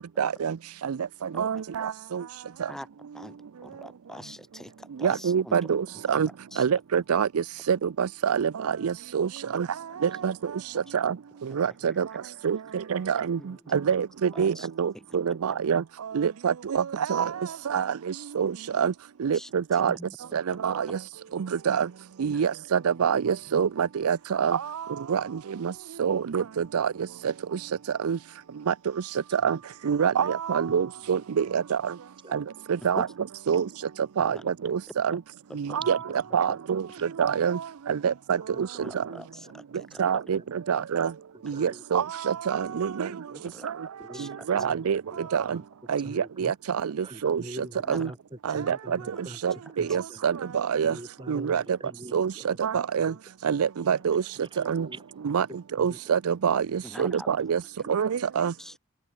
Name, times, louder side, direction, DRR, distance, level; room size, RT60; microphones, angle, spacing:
voice 1, 0.2-0.6 0.8-1.0 1.4-2.2 5.0-6.3 6.6-9.7 10.0-10.3 10.9-11.1 11.5-12.1 12.4-13.4 13.7-15.8 16.1-16.8 17.1-17.3 17.7-17.9 18.4-18.9 19.2-19.9 20.3-21.0 21.3-21.9 22.2-24.6 25.1-25.2 25.6-25.7 26.0-26.9 28.0-28.2 28.7-28.8 29.3-29.6 29.9-31.8 32.3-32.4 32.8-33.1 33.5-33.6 34.2-34.4 34.6-35.2 35.6-35.8 36.3-36.8 37.2-37.6 37.9-38.7 40.0-40.4 40.7-41.1 41.5-43.1 43.6-43.7 44.5-45.0 45.3-45.6 45.9-46.0 46.4-46.5 46.8-46.9 47.2-47.4 47.9-48.1 48.5-49.0 49.4-50.9 51.3-51.6 52.1-53.1 53.4-54.2 54.7-54.9 55.2-55.5 55.8-57.6 57.9-58.5, right 7 dB, 75° right, 0.4 m, -26 dB
voice 2, 3.6-5.6 6.1-6.2 6.5-6.7 11.8-12.0 13.4-13.8 14.3-14.7 14.9-15.2 15.5-15.6 19.3-20.6 20.9-21.0 22.3-22.5 32.8-33.1 34.2-34.7 35.1-35.2 35.5-35.8 36.5-36.6 38.8-40.2 40.7-40.8 43.5-43.7 44.1-44.5 47.9-48.0 48.5-48.6 56.8-57.3 58.6-58.8, equal, ahead, 3.7 m, -44 dB
voice 3, 38.4-41.8 43.0-43.4 44.0-45.6 46.0-46.6 47.0-49.4 49.7-50.3 50.8-52.6 52.9-53.2 53.8-56.2 57.8-58.3, right 1 dB, 20° right, 2.0 m, -46 dB
head